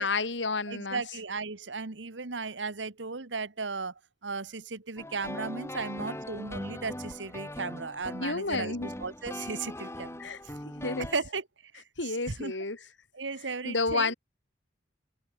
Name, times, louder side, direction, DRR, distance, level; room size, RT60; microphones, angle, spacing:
voice 1, 0.0-1.0 8.2-8.9 10.2-10.4 10.8-11.1 12.0-12.8 13.6-14.1, left 3 dB, 85° left, 2.5 m, -30 dB
voice 2, 0.7-3.9 4.2-10.5 11.0-11.4 11.7-12.5 13.1-14.1, right 4 dB, 90° right, 1.5 m, -36 dB
sound 1, 5.0-11.2, left 1 dB, 15° left, 4.9 m, -40 dB
head